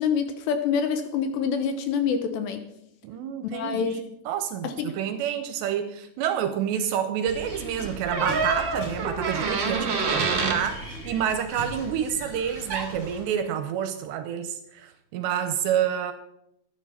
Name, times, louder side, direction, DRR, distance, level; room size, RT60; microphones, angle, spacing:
voice 1, 0.0-2.6 3.5-4.0 4.6-4.9, left 6 dB, 75° left, 8 dB, 2.8 m, -26 dB
voice 2, 3.0-16.1, right 9 dB, 80° right, 9 dB, 2.7 m, -28 dB
sound 1, 7.3-13.2, right 1 dB, 25° left, 3.3 m, -39 dB
sound 2, 8.1-10.6 12.7-12.9, right 4 dB, 65° right, 1.1 m, -26 dB
11.5 x 11.0 x 5.7 m, 0.79 s
omnidirectional pair, 5.5 m